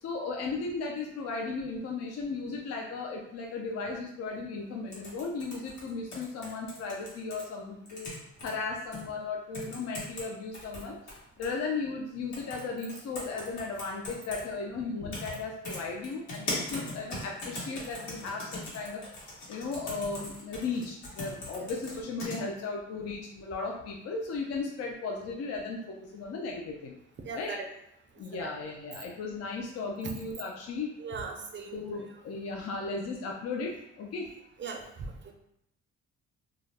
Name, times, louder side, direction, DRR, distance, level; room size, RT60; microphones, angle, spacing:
voice 1, 0.0-8.1 8.4-11.0 11.4-19.0 19.5-26.9 27.3-27.6 28.2-30.9 31.7-34.3, left 4 dB, 55° left, 0 dB, 0.4 m, -36 dB
sound 1, 4.9-7.4 7.9-8.5 8.9-9.0 9.5-10.3 10.5-11.5 12.3-12.6 12.9-14.4 15.1-15.4 15.6-22.4, left 2 dB, 70° left, 1.1 m, -39 dB
voice 2, 27.2-27.6 28.1-28.5 31.0-31.8 34.6-35.3, right 4 dB, 40° right, 3 dB, 0.5 m, -39 dB
2.3 x 2.0 x 3.2 m, 0.81 s
cardioid pair, 90°, 30 cm